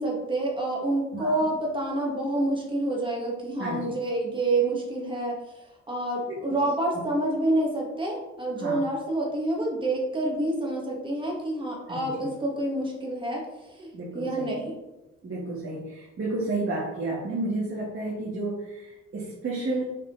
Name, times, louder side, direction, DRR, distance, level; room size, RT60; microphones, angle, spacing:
voice 1, 0.0-14.7, right 1 dB, 15° right, -2 dB, 1.9 m, -28 dB
voice 2, 1.1-1.5 3.6-3.9 6.3-6.6 8.6-8.8 11.9-12.3 13.9-14.5 15.2-19.9, right 2 dB, 45° right, -5 dB, 1.9 m, -32 dB
6.6 x 4.3 x 3.9 m, 1.0 s
cardioid pair, 90°, 30 cm